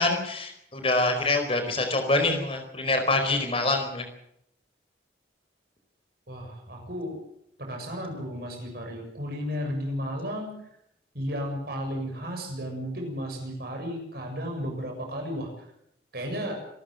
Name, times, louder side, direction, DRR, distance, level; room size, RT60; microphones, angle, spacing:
voice 1, 0.0-4.1, left 2 dB, 30° left, 6 dB, 4.7 m, -25 dB
voice 2, 6.3-7.2 7.6-10.6 11.1-15.5 16.1-16.6, equal, 55° right, 2 dB, 7.3 m, -33 dB
27.0 x 13.5 x 7.9 m, 0.75 s
head